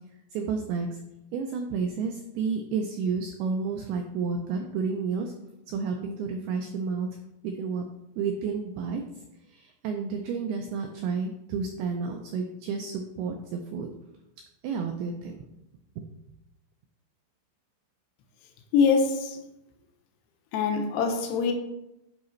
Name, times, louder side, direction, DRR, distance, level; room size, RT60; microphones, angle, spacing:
voice 1, 0.3-1.0 1.3-5.3 5.7-7.1 7.4-7.8 8.2-9.0 9.5-13.9 14.6-15.4, right 5 dB, 85° right, 4 dB, 2.2 m, -31 dB
voice 2, 18.7-19.4 20.5-21.5, left 5 dB, 80° left, 5 dB, 2.7 m, -23 dB
9.6 x 4.8 x 3.1 m, 0.90 s
omnidirectional pair, 5.1 m